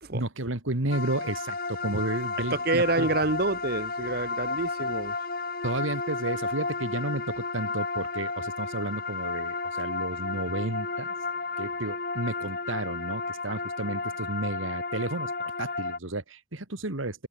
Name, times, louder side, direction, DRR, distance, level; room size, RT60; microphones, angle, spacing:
voice 1, 0.1-3.1 5.6-11.1 11.6-17.3, right 2 dB, 85° right, 2.4 m, -32 dB
sound 1, 0.9-16.0, left 3 dB, 45° left, 4.9 m, -33 dB
voice 2, 2.5-5.1, right 2 dB, 50° right, 1.3 m, -27 dB
head